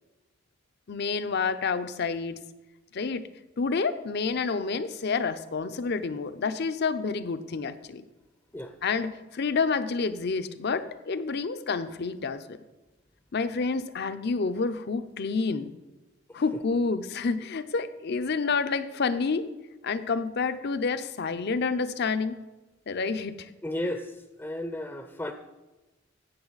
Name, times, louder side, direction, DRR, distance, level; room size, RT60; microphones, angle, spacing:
voice 1, 0.9-2.4 2.9-3.3 3.6-8.0 8.8-12.6 13.3-15.7 16.3-19.5 19.8-22.4 22.9-23.5, left 4 dB, 55° left, 11 dB, 0.6 m, -29 dB
voice 2, 23.6-25.3, left 1 dB, 10° left, 7 dB, 0.5 m, -34 dB
15.5 x 6.6 x 4.0 m, 1.1 s
head